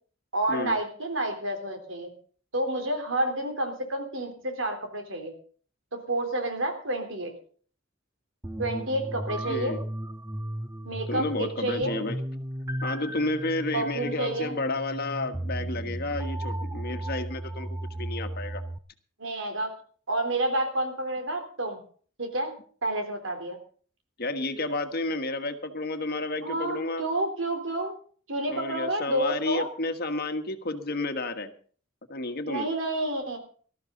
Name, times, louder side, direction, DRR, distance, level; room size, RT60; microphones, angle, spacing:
voice 1, 0.3-2.1 2.5-5.3 5.9-7.3 8.6-9.8 10.9-12.0 13.7-14.5 19.2-19.7 20.1-21.8 22.2-22.5 22.8-23.6 26.4-28.0 28.3-29.7 32.5-33.4, right 1 dB, 90° right, 5 dB, 3.6 m, -29 dB
sound 1, 8.4-18.8, right 1 dB, 15° right, 0.6 m, -35 dB
voice 2, 9.5-9.8 11.1-12.2 12.8-18.6 24.2-27.0 28.5-31.5 32.1-32.7, left 2 dB, 55° left, 8 dB, 1.5 m, -31 dB
19.0 x 13.0 x 3.9 m, 0.44 s
head